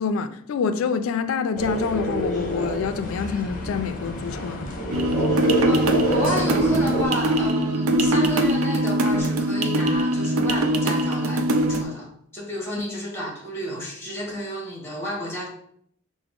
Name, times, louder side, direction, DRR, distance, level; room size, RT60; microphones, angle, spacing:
voice 1, 0.0-4.7, left 5 dB, 70° left, 0.3 m, -26 dB
sound 1, 1.6-7.1, right 1 dB, 40° left, 0.8 m, -28 dB
sound 2, 4.9-11.8, right 1 dB, 80° right, 0.4 m, -22 dB
voice 2, 5.7-15.5, equal, 10° left, 1.3 m, -31 dB
4.7 x 2.0 x 3.6 m
head